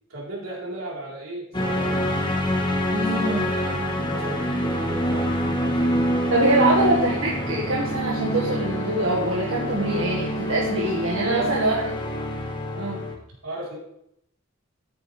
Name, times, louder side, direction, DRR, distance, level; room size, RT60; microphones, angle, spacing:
voice 1, 0.1-2.1 3.0-6.9 7.4-7.6 11.2-11.5 13.4-13.8, right 2 dB, 85° right, -4 dB, 4.1 m, -36 dB
sound 1, 1.5-13.1, equal, 20° left, 1.4 m, -26 dB
voice 2, 2.9-3.5 6.3-11.8 12.7-13.0, right 1 dB, 70° right, -3 dB, 1.8 m, -24 dB
13.0 x 9.2 x 3.4 m, 0.76 s
head